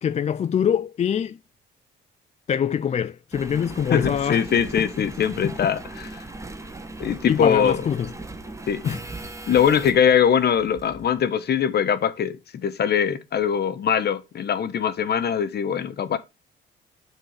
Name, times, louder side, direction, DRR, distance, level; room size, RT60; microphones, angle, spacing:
voice 1, 0.0-1.4 2.5-4.4 5.4-5.5 7.3-8.1 8.8-9.0, left 8 dB, 35° left, 0.4 m, -24 dB
Engine, 3.3-11.2 11.8-11.9, right 2 dB, 15° right, 1.1 m, -38 dB
voice 2, 3.9-6.2 7.0-7.8 8.7-8.8 9.5-12.4 12.6-16.2, left 8 dB, 55° left, 1.0 m, -22 dB
7.6 x 4.6 x 4.9 m
cardioid pair, 90°, 20 cm